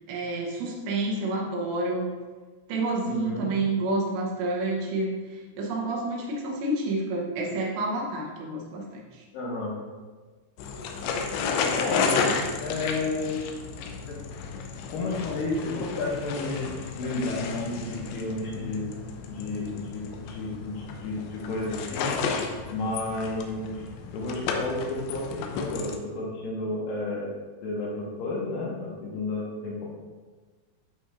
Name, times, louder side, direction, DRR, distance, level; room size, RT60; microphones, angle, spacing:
voice 1, 0.1-2.1 2.7-9.2, right 2 dB, 80° right, -1 dB, 3.1 m, -29 dB
voice 2, 3.1-3.5 9.3-9.7 11.8-12.3 12.6-13.4 14.1-14.2 14.9-18.8 19.3-22.1 22.7-23.9 24.1-27.3 27.6-29.9, left 2 dB, 75° left, -4 dB, 3.1 m, -31 dB
sound 1, 10.6-26.0, left 5 dB, 90° left, 2.9 m, -33 dB
11.5 x 4.3 x 2.5 m, 1.4 s
omnidirectional pair, 5.1 m